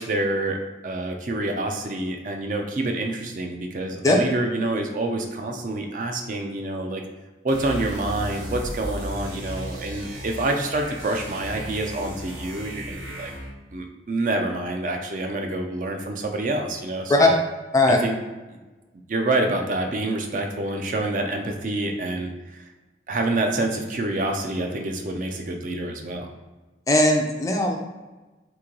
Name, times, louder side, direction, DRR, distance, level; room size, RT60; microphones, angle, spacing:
voice 1, 0.0-7.0 7.4-13.3 13.7-17.4 17.9-18.2 19.1-22.7 23.1-26.3, right 2 dB, 45° right, 3 dB, 0.4 m, -27 dB
sound 1, 7.5-13.6, right 1 dB, 80° right, 1.1 m, -35 dB
voice 2, 26.9-27.8, left 2 dB, 20° left, 1 dB, 0.4 m, -18 dB
3.0 x 2.6 x 3.8 m, 1.2 s
head